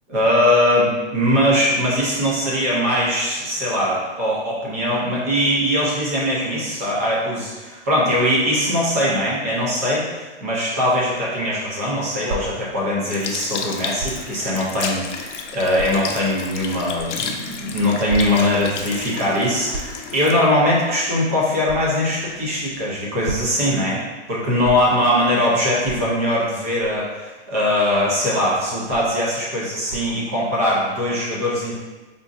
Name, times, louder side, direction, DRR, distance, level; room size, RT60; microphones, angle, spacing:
voice 1, 0.1-24.0 24.3-31.7, left 1 dB, 15° right, -6 dB, 0.3 m, -21 dB
sound 1, 12.2-12.4 14.0-14.2 14.9-15.0 15.7-15.9 16.9-17.1 18.1-18.2 18.5-18.7 19.6-20.0 21.6-21.8 23.0-23.5 24.6-24.7 25.8-26.0 26.8-27.0 27.9-28.1 28.9-29.2 29.8-30.1, right 3 dB, 60° right, 0.6 m, -31 dB
Sink (filling or washing) / Liquid, 13.0-21.6 22.3-22.4, left 5 dB, 85° left, 0.6 m, -32 dB
5.0 x 2.5 x 2.3 m, 1.2 s
hypercardioid pair, 145°, 35 cm